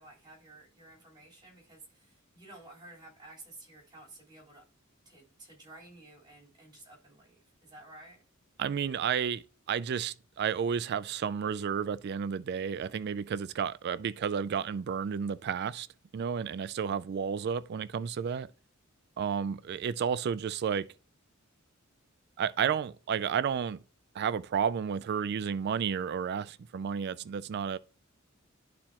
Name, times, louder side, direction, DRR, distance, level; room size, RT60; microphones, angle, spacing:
voice 1, 0.0-4.6 5.1-8.2, right 2 dB, 20° right, 4.0 m, -53 dB
voice 2, 8.6-15.9 16.1-18.5 19.2-20.9 22.4-23.8 24.1-27.8, right 7 dB, 55° right, 0.3 m, -32 dB
11.5 x 4.3 x 2.9 m
head